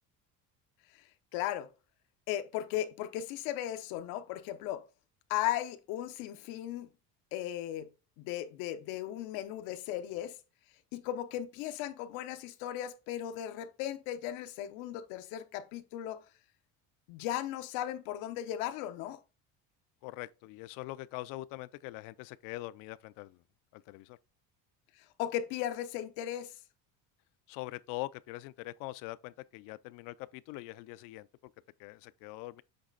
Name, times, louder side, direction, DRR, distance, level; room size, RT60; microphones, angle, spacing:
voice 1, 1.3-1.7 2.3-4.8 5.3-6.9 7.3-7.9 8.2-10.4 10.9-16.2 17.1-19.2 25.2-26.5, left 12 dB, 90° left, 0.9 m, -36 dB
voice 2, 20.0-23.4 23.7-24.2 27.5-31.5 31.8-32.6, left 19 dB, 70° left, 0.5 m, -43 dB
7.9 x 3.2 x 3.9 m
cardioid pair, 175°, 35 cm